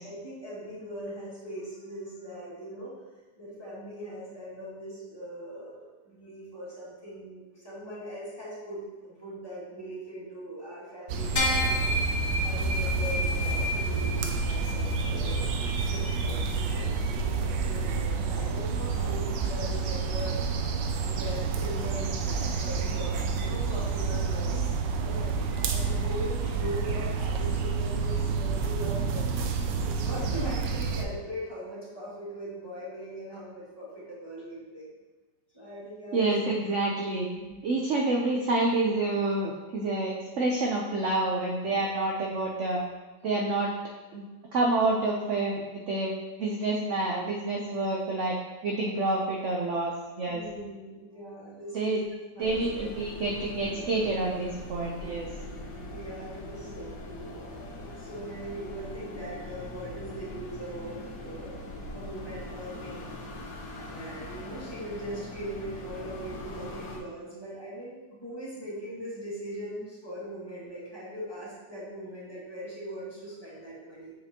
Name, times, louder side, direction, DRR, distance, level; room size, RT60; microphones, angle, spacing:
voice 1, 0.0-2.9 3.4-11.9 12.4-20.4 21.0-29.4 29.8-34.9 35.5-36.3 37.3-37.8 50.3-52.9 55.9-61.5 61.9-63.3 63.7-74.1, equal, 15° left, -9 dB, 2.0 m, -40 dB
sound 1, 11.1-31.0, right 5 dB, 80° right, 1.3 m, -29 dB
sound 2, 11.4-17.0, left 1 dB, 40° left, 1.3 m, -31 dB
voice 2, 36.1-37.3 37.6-42.8 43.2-43.7 44.1-44.2 44.5-46.1 46.4-48.4 48.6-50.4 51.7-52.0 52.4-55.3, right 2 dB, 60° right, -1 dB, 0.8 m, -28 dB
sound 3, 52.4-67.0, left 1 dB, 80° left, 1.9 m, -41 dB
7.4 x 5.1 x 2.8 m, 1.2 s
omnidirectional pair, 2.0 m